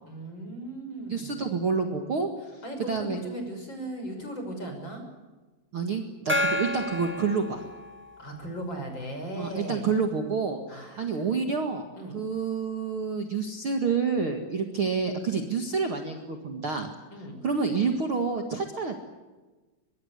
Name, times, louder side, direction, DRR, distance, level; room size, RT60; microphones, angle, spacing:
voice 1, 0.0-1.4 2.6-5.0 8.2-9.9 10.7-11.3 11.9-12.2 17.1-17.4, right 1 dB, 30° left, 5 dB, 6.5 m, -37 dB
voice 2, 1.1-2.3 2.9-3.2 5.7-7.6 9.4-11.9 12.1-16.9 17.4-19.0, right 5 dB, 45° right, 4 dB, 2.3 m, -28 dB
Gong, 6.3-8.3, left 1 dB, 10° right, 0.7 m, -30 dB
23.5 x 23.5 x 8.2 m, 1.2 s
omnidirectional pair, 4.1 m